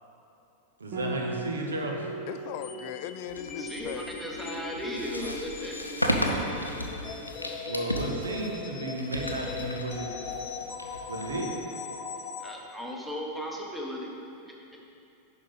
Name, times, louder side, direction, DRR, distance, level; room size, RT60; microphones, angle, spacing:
voice 1, 0.8-2.1 7.6-10.2 11.1-11.6, right 2 dB, 70° right, 1 dB, 1.0 m, -33 dB
Piano, 0.9-10.2, right 2 dB, 45° right, 1.3 m, -43 dB
voice 2, 2.3-4.6 5.2-5.7, left 12 dB, 45° left, 11 dB, 0.3 m, -40 dB
sound 1, 2.6-12.5, left 5 dB, 25° left, 0.7 m, -39 dB
sound 2, 3.3-11.9, equal, 90° left, 0.6 m, -34 dB
voice 3, 3.6-5.8 12.4-14.2 14.5-14.6, equal, 5° right, -1 dB, 1.2 m, -36 dB
9.6 x 5.8 x 3.9 m, 2.8 s
figure-of-eight pair, 90°, 0 cm